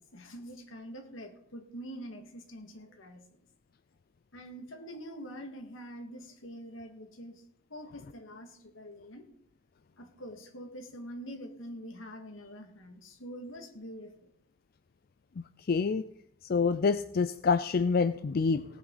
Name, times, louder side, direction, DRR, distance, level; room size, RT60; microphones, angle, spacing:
voice 1, 0.0-3.2 4.3-7.4 7.7-9.3 10.0-14.1, equal, 80° left, 5 dB, 2.2 m, -45 dB
voice 2, 15.7-16.0 16.4-18.6, left 5 dB, 50° left, 12 dB, 0.4 m, -27 dB
18.0 x 9.4 x 4.1 m, 0.70 s
head